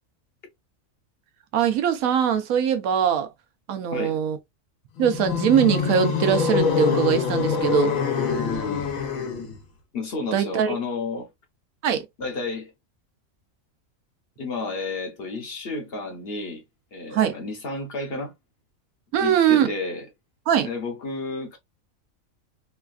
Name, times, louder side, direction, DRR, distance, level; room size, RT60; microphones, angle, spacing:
voice 1, 1.5-3.3 3.7-4.4 5.0-7.9 10.3-10.7 11.8-12.1 17.1-17.4 19.1-19.7 20.5-20.7, right 8 dB, 85° right, 1.1 m, -21 dB
sound 1, 5.0-9.6, left 5 dB, 80° left, 1.2 m, -24 dB
voice 2, 9.9-11.3 12.2-12.7 14.4-16.6 16.9-18.3 19.2-20.1 20.7-21.6, left 3 dB, 55° left, 0.8 m, -31 dB
3.2 x 2.3 x 2.3 m
omnidirectional pair, 1.4 m